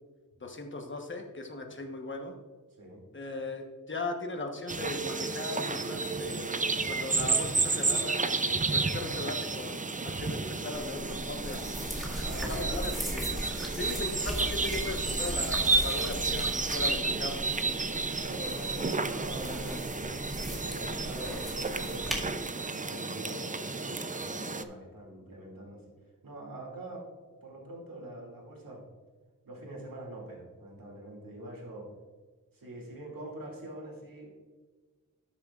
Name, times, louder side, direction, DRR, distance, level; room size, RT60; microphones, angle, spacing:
voice 1, 0.4-2.3 3.1-6.5 6.9-8.2 8.4-11.7 12.5-13.3 13.7-17.4, left 2 dB, 35° left, 3 dB, 1.2 m, -38 dB
sound 1, 4.7-24.6, right 3 dB, 25° right, 0.5 m, -32 dB
sound 2, 10.7-22.2, equal, ahead, 2.0 m, -38 dB
voice 2, 12.2-12.8 13.6-13.8 16.9-17.2 18.1-22.5 22.8-25.9 26.2-27.1 27.4-28.8 29.4-31.9 32.5-34.3, right 1 dB, 70° right, -2 dB, 2.6 m, -44 dB
12.5 x 7.1 x 2.5 m, 1.4 s
wide cardioid pair, 70°, 35 cm